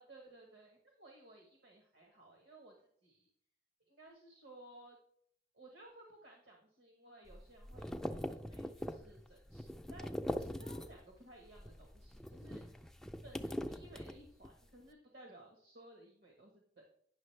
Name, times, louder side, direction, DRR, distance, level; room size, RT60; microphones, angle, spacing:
voice 1, 0.0-3.3 3.9-5.0 5.5-13.0 13.2-16.8, right 1 dB, 65° right, 0 dB, 1.3 m, -58 dB
sound 1, 7.3-11.2 11.5-14.6, equal, ahead, 0.3 m, -42 dB
9.4 x 6.1 x 3.2 m, 0.67 s
head